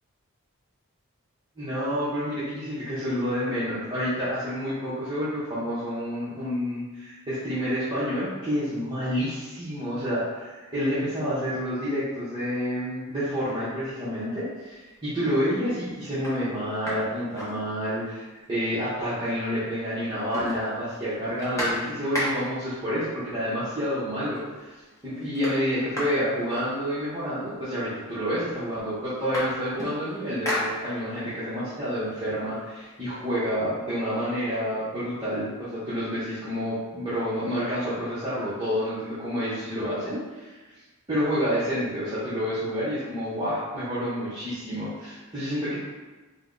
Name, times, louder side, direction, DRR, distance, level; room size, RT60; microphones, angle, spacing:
voice 1, 1.6-24.7 25.0-40.6 41.1-45.8, equal, 20° right, -12 dB, 0.7 m, -29 dB
sound 1, 14.7-15.2 15.7-15.8 16.1-18.2 18.5-18.6 18.9-19.7 20.0-22.7 23.6-23.7 24.1-24.6 24.9-27.3 28.1-28.2 28.5-31.3 31.7-33.5, left 1 dB, 15° left, 0.8 m, -35 dB
3.4 x 2.1 x 3.6 m, 1.3 s
head